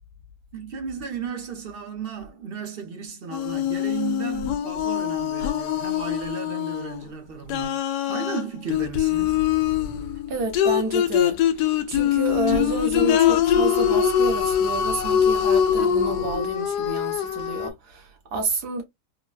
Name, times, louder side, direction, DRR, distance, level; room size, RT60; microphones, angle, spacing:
voice 1, 0.5-9.4, right 6 dB, 45° right, 0.8 m, -35 dB
sound 1, 3.3-7.1 7.5-17.7, left 9 dB, 85° left, 1.2 m, -23 dB
voice 2, 10.3-18.8, right 3 dB, 75° right, 1.6 m, -29 dB
3.7 x 2.2 x 2.3 m
omnidirectional pair, 1.7 m